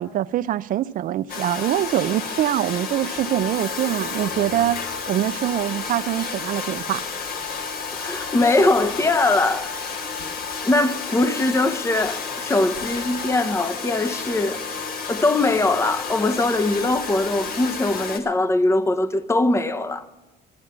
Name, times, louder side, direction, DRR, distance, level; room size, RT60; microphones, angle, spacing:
voice 1, 0.0-4.8 5.1-7.1, right 12 dB, 55° right, 0.4 m, -24 dB
Domestic sounds home sounds, 1.3-18.2, left 5 dB, 60° left, 1.6 m, -31 dB
voice 2, 7.9-9.7 10.6-14.6 15.1-20.1, left 2 dB, 15° left, 0.8 m, -21 dB
13.0 x 7.3 x 9.4 m
cardioid pair, 110°, 17 cm